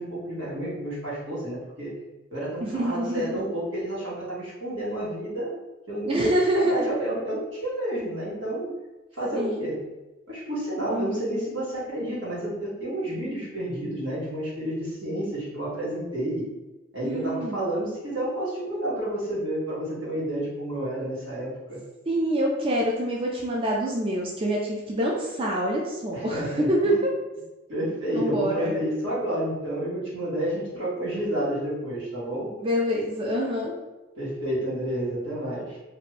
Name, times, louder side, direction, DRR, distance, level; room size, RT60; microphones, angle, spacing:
voice 1, 0.0-1.9 2.3-5.5 5.9-8.7 9.1-9.8 10.3-16.5 16.9-21.8 26.1-27.0 27.7-32.5 34.2-35.8, right 1 dB, 80° right, -8 dB, 1.5 m, -30 dB
voice 2, 2.6-3.4 6.1-6.9 9.3-9.7 10.9-11.3 17.0-17.7 22.1-27.1 28.1-28.8 32.6-33.8, right 1 dB, 30° right, -2 dB, 0.4 m, -26 dB
2.7 x 2.5 x 3.2 m, 1.1 s
head